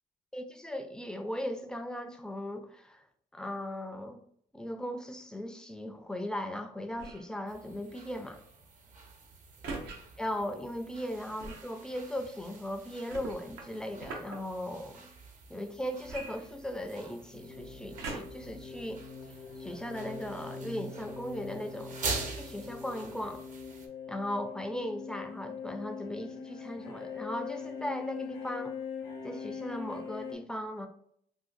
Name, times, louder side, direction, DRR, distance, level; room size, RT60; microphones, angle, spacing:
voice 1, 0.3-3.0 3.3-4.2 4.5-8.4 10.2-15.1 15.5-19.0 19.6-22.0 22.4-23.4 24.1-28.8 29.2-30.9, left 1 dB, 5° left, 6 dB, 0.4 m, -38 dB
sound 1, 6.9-7.3 9.6-10.0 11.4-11.7 13.1-14.4 16.1-17.0 18.0-18.5 19.2-19.3, right 3 dB, 80° right, 0.8 m, -41 dB
sound 2, 7.5-23.9, right 4 dB, 50° right, 0.7 m, -45 dB
sound 3, 17.3-30.3, left 6 dB, 75° left, 0.8 m, -42 dB
3.7 x 2.4 x 2.5 m, 0.67 s
cardioid pair, 110°, 17 cm